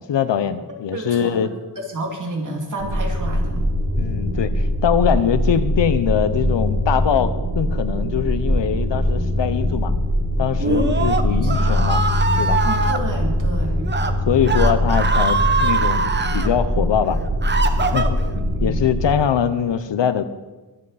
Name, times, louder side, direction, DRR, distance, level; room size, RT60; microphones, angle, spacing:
voice 1, 0.1-1.5 4.0-9.9 10.4-12.0 12.4-12.6 14.3-17.2 17.8-18.2 18.6-20.2, left 8 dB, 80° left, 12 dB, 0.8 m, -22 dB
voice 2, 0.9-3.6 10.6-11.9 12.6-13.8 18.3-18.9, right 1 dB, 45° right, 0 dB, 2.5 m, -29 dB
sound 1, 2.8-19.1, left 1 dB, 80° right, 3.9 m, -22 dB
Screaming, 10.6-13.0 13.8-14.1 14.4-16.5 17.0-18.4, right 4 dB, 25° right, 0.8 m, -23 dB
23.5 x 7.8 x 4.2 m, 1.2 s
wide cardioid pair, 140°, 43 cm